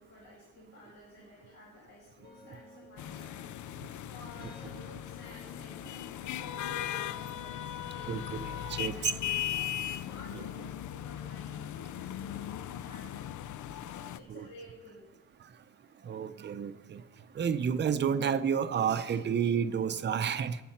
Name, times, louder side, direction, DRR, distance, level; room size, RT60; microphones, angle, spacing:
voice 1, 0.0-3.5 4.1-8.5 8.7-9.5 10.0-13.3 13.9-15.2, left 1 dB, 65° left, -5 dB, 2.7 m, -52 dB
sound 1, 2.2-11.4, left 2 dB, 30° left, 1.8 m, -59 dB
sound 2, 3.0-14.2, left 11 dB, 85° left, 0.5 m, -38 dB
voice 2, 8.1-9.0 14.3-14.5 16.0-17.0 17.4-20.6, right 7 dB, 40° right, 11 dB, 0.6 m, -30 dB
22.0 x 7.6 x 4.3 m, 1.1 s
wide cardioid pair, 180°, 29 cm